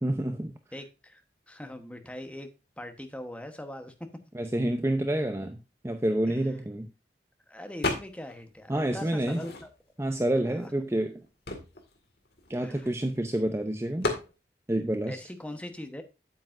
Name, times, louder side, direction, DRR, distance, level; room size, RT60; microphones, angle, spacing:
voice 1, 0.0-0.5 4.3-6.9 8.7-9.4 10.0-11.2 12.5-14.1 14.7-15.2, right 1 dB, 15° right, 0.6 m, -28 dB
voice 2, 0.7-1.2 1.5-2.5 2.8-3.9 6.3-6.4 7.5-9.7 10.5-10.7 12.6-12.9 15.1-16.0, left 1 dB, 5° left, 1.1 m, -41 dB
sound 1, 7.8-8.4 8.7-10.0 10.6-10.7 10.9-13.2 14.0-14.3, left 2 dB, 65° left, 2.0 m, -34 dB
8.9 x 8.3 x 2.6 m
head